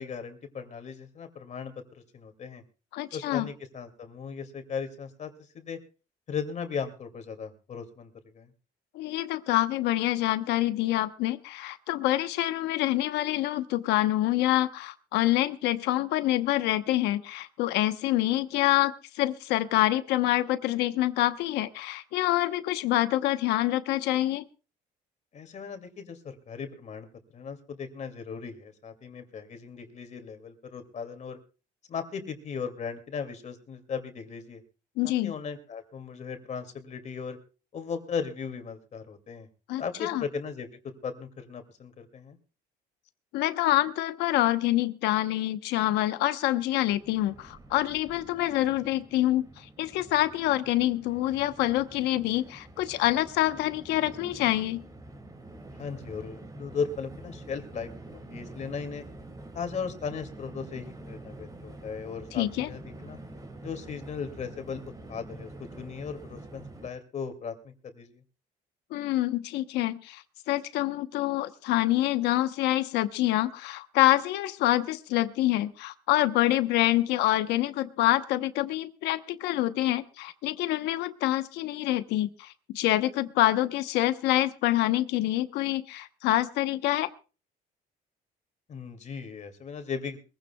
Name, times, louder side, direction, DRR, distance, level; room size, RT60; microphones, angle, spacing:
voice 1, 0.0-1.7 2.1-2.6 3.1-5.8 6.3-8.5 25.3-27.1 27.3-31.4 31.9-34.6 35.0-37.4 37.7-39.5 39.8-42.4 55.8-59.0 59.5-63.2 63.6-68.2 88.7-90.2, left 6 dB, 45° left, 6 dB, 2.4 m, -37 dB
voice 2, 2.9-3.5 8.9-24.4 35.0-35.3 39.7-40.2 43.3-54.8 62.3-62.7 68.9-87.1, left 15 dB, 90° left, 11 dB, 1.0 m, -26 dB
Train, 46.9-66.9, right 2 dB, 20° right, 2.4 m, -46 dB
22.5 x 16.0 x 2.3 m, 0.34 s
cardioid pair, 110°, 17 cm